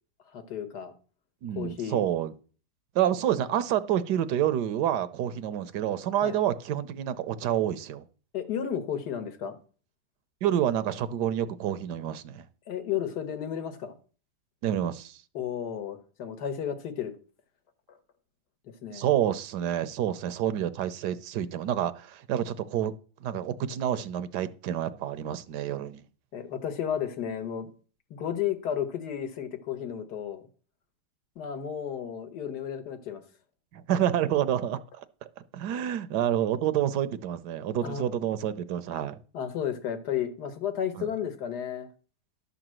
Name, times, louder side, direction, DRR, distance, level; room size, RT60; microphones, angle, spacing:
voice 1, 0.3-0.9 1.5-2.0 6.2-6.3 8.3-9.6 12.7-14.0 15.3-17.1 17.9-18.0 18.8-19.1 26.3-27.7 28.1-30.4 31.4-33.2 37.8-38.1 39.3-41.9, left 9 dB, 70° left, 1.6 m, -33 dB
voice 2, 1.4-2.3 2.9-8.0 10.4-12.4 14.6-15.2 18.9-22.9 23.2-26.0 33.7-35.0 35.5-39.2 41.0-41.1, right 10 dB, 75° right, 1.2 m, -28 dB
11.5 x 3.9 x 7.5 m
omnidirectional pair, 1.9 m